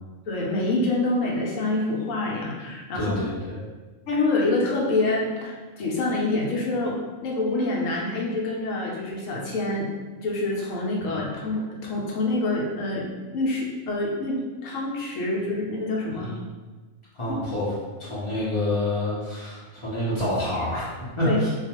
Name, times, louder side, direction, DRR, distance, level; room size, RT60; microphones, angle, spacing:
voice 1, 0.3-3.1 4.1-9.9 10.2-13.1 13.3-16.3 17.3-17.4 21.2-21.4, left 2 dB, 75° left, -3 dB, 0.9 m, -26 dB
voice 2, 2.9-3.6 11.1-11.2 16.1-16.4 17.1-17.7 18.0-20.9 21.2-21.5, left 1 dB, 30° left, -9 dB, 0.6 m, -27 dB
2.4 x 2.2 x 2.9 m, 1.3 s
omnidirectional pair, 1.4 m